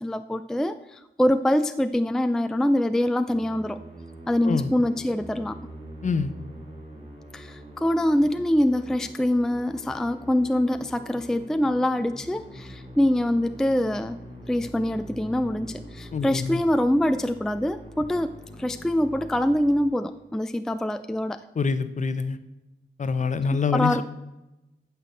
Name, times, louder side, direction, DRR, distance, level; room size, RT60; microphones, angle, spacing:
voice 1, 0.0-3.8 4.3-5.6 7.3-14.2 14.5-21.4 23.7-24.0, left 1 dB, 5° left, 10 dB, 0.4 m, -24 dB
Musical instrument, 3.3-20.4, equal, 30° right, 3.3 m, -44 dB
voice 2, 6.0-6.3 16.1-16.6 21.5-22.4 23.0-24.0, left 5 dB, 45° left, 12 dB, 0.9 m, -25 dB
15.0 x 5.9 x 8.2 m, 0.98 s
wide cardioid pair, 150°, 18 cm